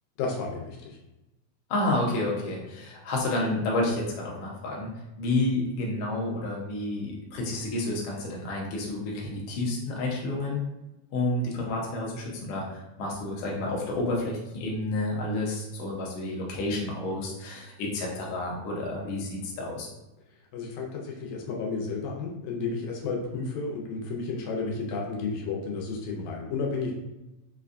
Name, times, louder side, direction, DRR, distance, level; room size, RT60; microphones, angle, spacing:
voice 1, 0.2-1.0 19.0-19.2 20.5-26.9, left 4 dB, 90° left, -1 dB, 2.1 m, -32 dB
voice 2, 1.7-4.9 5.2-10.6 11.1-19.9, left 2 dB, 70° left, -3 dB, 1.6 m, -30 dB
5.1 x 2.2 x 2.5 m, 0.98 s
omnidirectional pair, 3.3 m